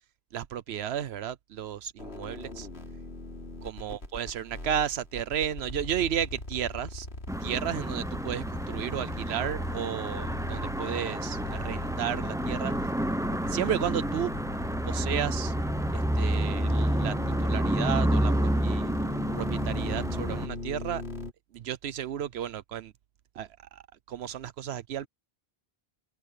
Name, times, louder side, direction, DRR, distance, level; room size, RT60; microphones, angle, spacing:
voice 1, 0.3-2.7 3.6-7.1 7.4-12.7 13.5-14.3 14.9-15.5 15.9-17.1 17.4-18.9 19.4-21.0 21.5-22.9 23.4-23.8 24.1-25.1, right 10 dB, 85° right, 1.0 m, -33 dB
sound 1, 2.0-21.3, left 2 dB, 90° left, 4.2 m, -39 dB
sound 2, 7.3-20.5, right 1 dB, 5° right, 0.6 m, -29 dB
open air
omnidirectional pair, 1.0 m